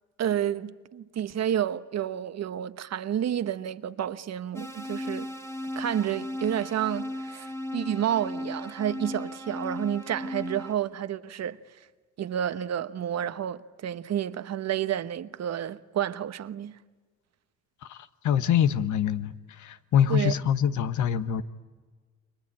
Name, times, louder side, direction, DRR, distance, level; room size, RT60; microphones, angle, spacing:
voice 1, 0.2-5.3 5.8-11.6 12.2-16.7 20.1-20.3, right 10 dB, 60° right, 1.1 m, -30 dB
sound 1, 4.5-10.7, left 1 dB, 10° left, 1.9 m, -36 dB
voice 2, 17.8-21.4, left 9 dB, 75° left, 1.3 m, -25 dB
30.0 x 23.0 x 8.7 m
cardioid pair, 90°, 30 cm